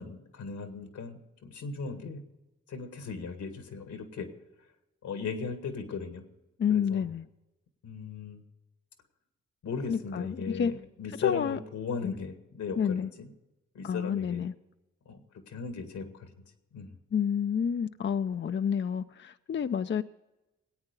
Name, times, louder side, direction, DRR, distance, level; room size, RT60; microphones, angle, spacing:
voice 1, 0.0-2.2 2.7-4.3 4.6-4.7 5.0-6.2 6.7-7.1 7.8-8.4 9.6-13.3 13.7-14.4 15.1-16.3 16.7-17.0, left 5 dB, 80° left, 7 dB, 1.9 m, -38 dB
voice 2, 6.6-7.3 9.9-10.7 11.2-11.6 12.0-12.1 12.8-13.1 13.8-14.5 17.1-20.0, left 7 dB, 40° left, 10 dB, 0.5 m, -29 dB
18.5 x 8.8 x 5.3 m, 1.0 s
supercardioid pair, 50°, 29 cm